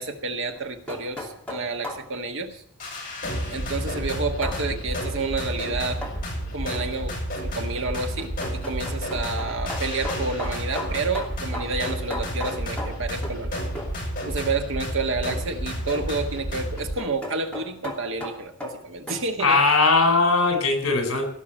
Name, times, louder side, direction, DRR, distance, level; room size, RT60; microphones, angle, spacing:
voice 1, 0.0-2.6 3.5-6.0 6.5-13.6 14.3-19.6 21.1-21.2, right 3 dB, 60° right, 5 dB, 1.5 m, -30 dB
sound 1, 0.5-2.1 4.4-4.6 6.0-6.3 7.6-13.5 13.8-14.0 16.1-19.3, left 1 dB, 5° left, 2.9 m, -36 dB
sound 2, 2.8-16.9, equal, 40° left, 6.4 m, -31 dB
voice 2, 19.4-21.3, left 3 dB, 75° left, 5 dB, 4.2 m, -19 dB
17.5 x 6.0 x 8.9 m, 0.64 s
head